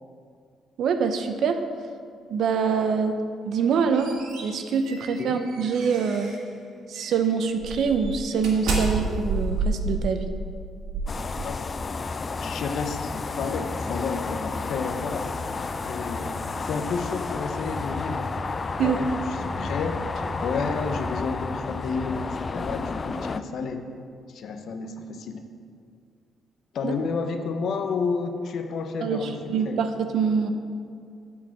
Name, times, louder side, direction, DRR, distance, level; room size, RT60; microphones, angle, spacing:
voice 1, 0.8-1.6 2.3-3.2 3.4-4.1 4.4-6.4 6.9-10.3 18.8-19.0 26.8-26.9 29.0-30.5, right 6 dB, 70° right, 8 dB, 0.7 m, -25 dB
sound 1, 3.5-6.5 7.0-7.2 7.6-11.9, right 3 dB, 85° right, 1.7 m, -30 dB
sound 2, 11.1-23.4, left 4 dB, 35° left, 0.3 m, -32 dB
voice 2, 12.4-15.3 15.9-16.3 16.6-18.3 18.8-20.0 20.4-23.9 24.3-25.4 26.7-29.8, left 5 dB, 65° left, 7 dB, 0.8 m, -31 dB
sound 3, 13.1-21.3, left 1 dB, 15° left, 0.8 m, -39 dB
9.3 x 4.7 x 7.4 m, 2.3 s
cardioid pair, 90°, 0 cm